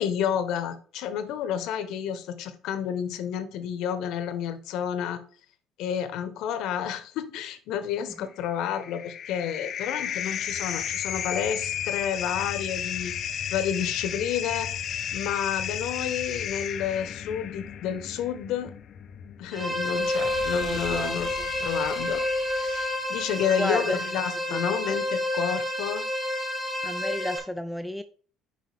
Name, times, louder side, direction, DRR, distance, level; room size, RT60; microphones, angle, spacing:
voice 1, 0.0-5.2 5.8-13.1 13.5-14.7 15.1-18.7 19.4-21.3 21.6-22.2 22.5-26.1, left 9 dB, 75° left, 1.0 m, -30 dB
sound 1, 8.4-22.9, left 9 dB, 50° left, 0.6 m, -34 dB
sound 2, 19.5-27.4, left 1 dB, 15° right, 1.9 m, -29 dB
voice 2, 20.6-21.8 23.6-24.0 24.5-24.7 26.8-28.0, left 1 dB, 5° left, 0.4 m, -32 dB
6.5 x 4.9 x 3.4 m
cardioid pair, 110°, 0 cm